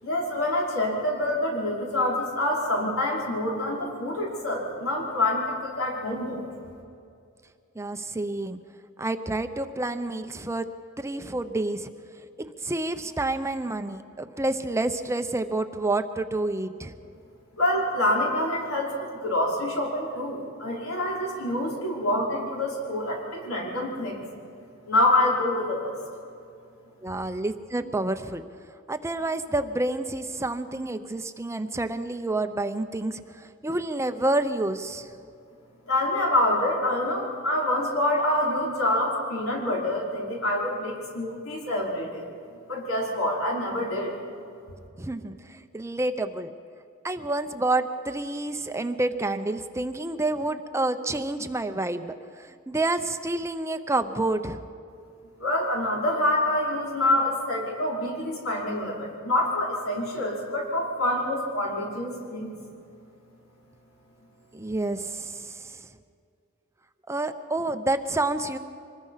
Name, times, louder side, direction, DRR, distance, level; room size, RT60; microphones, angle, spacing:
voice 1, 0.0-6.5 17.6-24.2 24.9-25.9 35.9-42.2 42.7-44.1 55.4-62.5, left 1 dB, 80° left, -2 dB, 5.3 m, -26 dB
voice 2, 7.8-8.6 9.0-10.7 11.0-11.9 12.4-16.9 27.0-28.4 28.9-35.1 45.0-46.5 47.0-54.6 64.5-65.9 67.1-68.6, right 2 dB, 15° right, 9 dB, 0.7 m, -29 dB
25.5 x 20.5 x 5.7 m, 2.4 s
head